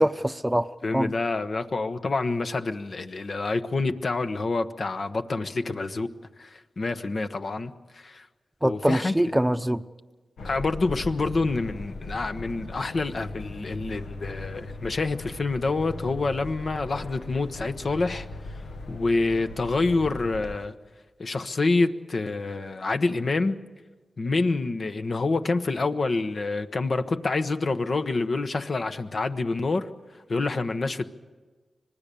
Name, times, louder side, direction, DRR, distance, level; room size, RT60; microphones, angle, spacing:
voice 1, 0.0-1.1 8.6-9.8, right 1 dB, 10° right, 0.8 m, -24 dB
voice 2, 0.8-6.1 6.4-8.3 8.6-9.1 10.4-18.6 18.9-20.7 21.2-23.6 24.2-29.9 30.1-31.1, left 3 dB, 60° left, 1.1 m, -27 dB
sound 1, 10.4-20.6, left 2 dB, 90° left, 1.3 m, -39 dB
25.5 x 19.0 x 6.9 m
cardioid pair, 50°, 0 cm